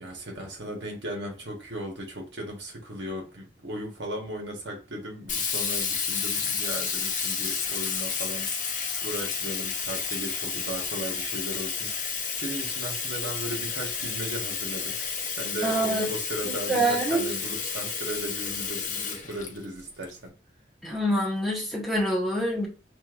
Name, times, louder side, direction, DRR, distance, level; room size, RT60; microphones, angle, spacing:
voice 1, 0.0-8.5 9.0-15.0 15.4-20.3, right 1 dB, 80° right, 1.4 m, -36 dB
Sink (filling or washing), 5.3-20.0, left 6 dB, 45° left, 0.8 m, -31 dB
voice 2, 15.6-16.0 16.4-17.3 20.8-22.7, right 1 dB, ahead, 1.4 m, -26 dB
6.8 x 2.6 x 2.5 m
head